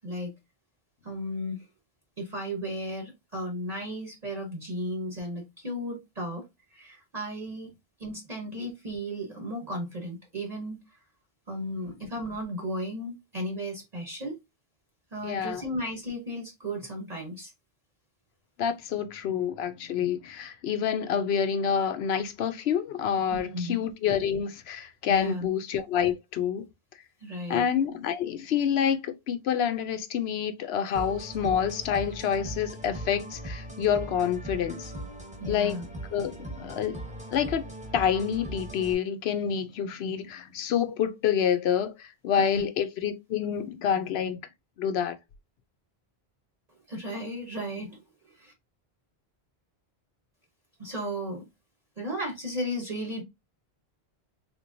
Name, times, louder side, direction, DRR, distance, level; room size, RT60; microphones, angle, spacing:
voice 1, 1.0-1.7 2.2-6.4 6.7-7.7 8.0-11.0 11.5-14.4 15.1-17.5 23.3-23.8 25.1-25.5 27.2-27.7 35.4-35.8 42.4-42.7 46.9-48.0 48.3-48.5 50.8-51.4 52.0-53.2, equal, 40° right, 0.9 m, -35 dB
voice 2, 15.2-15.6 18.6-26.7 27.5-34.9 35.5-35.8 36.1-37.0 37.3-37.6 37.9-44.4 44.8-45.2, left 8 dB, 75° left, 0.8 m, -28 dB
sound 1, 30.9-38.9, right 1 dB, 5° right, 0.9 m, -39 dB
3.7 x 3.0 x 2.5 m
omnidirectional pair, 1.1 m